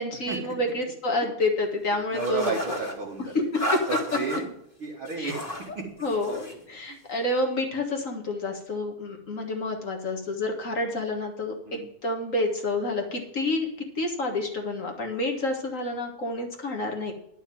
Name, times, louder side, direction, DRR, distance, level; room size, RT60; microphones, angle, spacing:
voice 1, 0.0-2.7 3.3-3.8 5.2-5.3 6.0-13.7 13.9-17.1, left 2 dB, 40° left, 2 dB, 1.3 m, -29 dB
voice 2, 2.1-3.3 3.6-4.5 4.8-5.4 5.8-5.9 6.9-7.0 11.7-11.8, right 4 dB, 50° right, -4 dB, 2.1 m, -32 dB
sound 1, 2.2-3.0 3.5-4.4 5.1-5.7 6.0-6.6, equal, 20° left, 1.9 m, -33 dB
11.5 x 5.8 x 7.5 m, 0.76 s
omnidirectional pair, 3.4 m